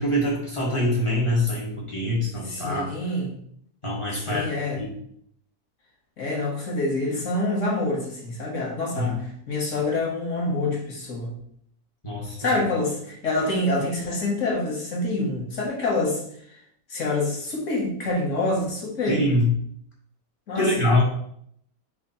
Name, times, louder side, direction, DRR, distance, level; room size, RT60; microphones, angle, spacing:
voice 1, 0.0-2.9 3.8-4.5 4.7-4.9 8.9-9.1 12.0-12.6 19.0-19.5 20.5-21.0, left 1 dB, 25° left, -5 dB, 0.7 m, -24 dB
voice 2, 2.4-3.3 4.1-4.8 6.2-11.4 12.4-16.2 16.5-16.6 16.9-19.3 20.5-20.7, left 2 dB, 50° left, -2 dB, 1.2 m, -26 dB
3.6 x 3.3 x 4.1 m, 0.68 s
omnidirectional pair, 2.1 m